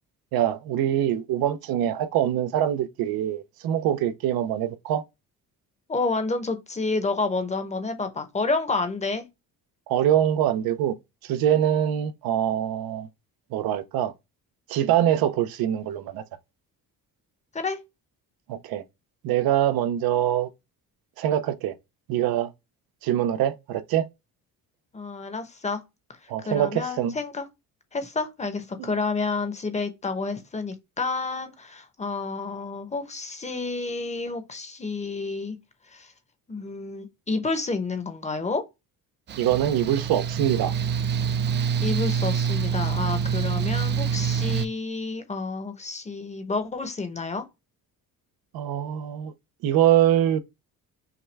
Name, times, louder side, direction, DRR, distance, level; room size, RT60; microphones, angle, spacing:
voice 1, 0.3-5.0 9.9-10.9 11.2-13.1 13.5-14.1 14.7-16.2 18.5-18.8 19.2-20.5 21.2-21.7 22.1-22.5 23.0-24.1 26.3-27.1 39.4-40.7 48.5-49.3 49.6-50.4, right 11 dB, 80° right, 0.7 m, -24 dB
voice 2, 5.9-9.2 17.5-17.8 24.9-25.8 26.2-27.5 27.9-35.6 35.9-36.1 36.5-38.7 41.8-47.4, left 3 dB, 20° left, 0.8 m, -29 dB
Mechanical fan, 39.3-44.7, right 7 dB, 30° right, 0.4 m, -26 dB
5.8 x 2.3 x 3.2 m
cardioid pair, 150°, 35 cm